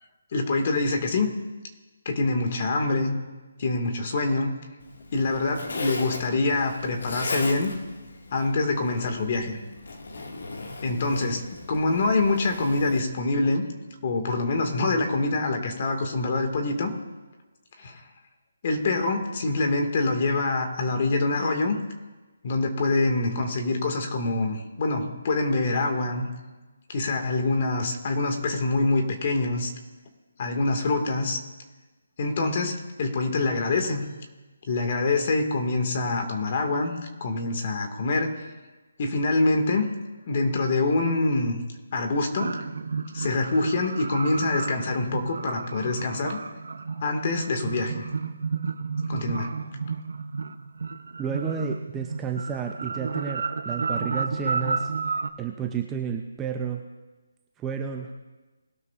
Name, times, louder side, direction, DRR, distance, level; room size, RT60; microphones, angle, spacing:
voice 1, 0.3-1.3 2.1-3.2 3.6-4.6 5.1-7.7 8.3-9.6 10.8-13.6 14.0-16.9 17.8-18.0 18.6-21.8 22.4-26.3 26.9-29.7 30.4-31.4 32.2-34.0 34.7-37.0 37.2-38.3 39.0-39.8 40.3-41.6 41.9-42.6 43.1-46.4 47.0-48.1 49.1-49.5, left 2 dB, 35° left, 4 dB, 1.8 m, -25 dB
Zipper (clothing), 4.8-13.0, left 2 dB, 75° left, 1.9 m, -38 dB
sound 1, 42.3-55.3, right 4 dB, 70° right, 0.7 m, -32 dB
voice 2, 51.2-54.9 55.4-56.8 57.6-58.1, right 7 dB, 10° right, 3 dB, 0.5 m, -31 dB
21.0 x 12.5 x 2.4 m, 1.2 s
hypercardioid pair, 170°, 0 cm